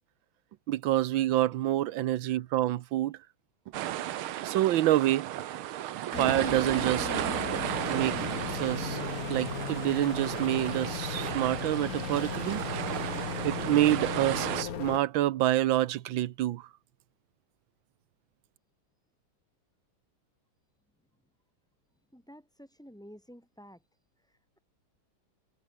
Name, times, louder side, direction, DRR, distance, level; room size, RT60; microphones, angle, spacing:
voice 1, 0.7-3.2 4.4-5.3 6.2-7.3 7.9-8.2 8.5-9.0 9.3-12.6 13.4-16.7, right 14 dB, 75° right, 1.5 m, -27 dB
sound 1, 3.7-14.6, right 13 dB, 90° right, 1.8 m, -34 dB
sound 2, 6.1-15.0, left 8 dB, 50° left, 1.5 m, -36 dB
voice 2, 22.1-23.9 24.2-24.6, equal, ahead, 5.8 m, -52 dB
omnidirectional pair, 2.3 m